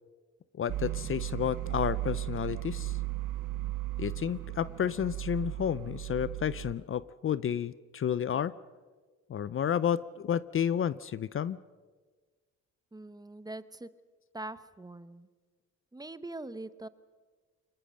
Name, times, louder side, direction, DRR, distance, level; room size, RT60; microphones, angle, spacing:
voice 1, 0.6-3.0 4.0-8.5 9.3-11.6, left 9 dB, 45° left, 18 dB, 0.6 m, -31 dB
sound 1, 0.7-6.7, right 17 dB, 85° right, 1.1 m, -36 dB
voice 2, 12.9-13.9 14.3-15.3 15.9-16.9, right 2 dB, 15° right, 14 dB, 0.9 m, -42 dB
24.5 x 20.0 x 6.5 m, 1.4 s
cardioid pair, 90°, 30 cm